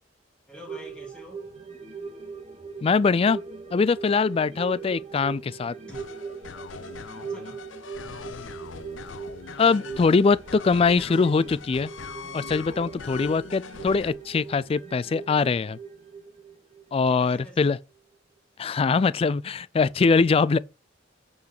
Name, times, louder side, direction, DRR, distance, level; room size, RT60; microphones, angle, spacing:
voice 1, 0.5-1.5 5.9-6.1 7.2-7.6 16.9-17.7, equal, 5° left, 2.3 m, -46 dB
sound 1, 0.7-17.5 17.8-17.9, right 5 dB, 35° right, 1.7 m, -40 dB
voice 2, 2.8-3.4 3.7-5.7 9.6-11.9 12.3-15.8 16.9-17.8 18.6-20.6, left 4 dB, 30° left, 0.3 m, -22 dB
sound 2, 5.9-14.1, left 5 dB, 90° left, 0.6 m, -42 dB
sound 3, 8.6-15.3, left 3 dB, 65° left, 1.3 m, -53 dB
8.5 x 4.0 x 6.5 m
head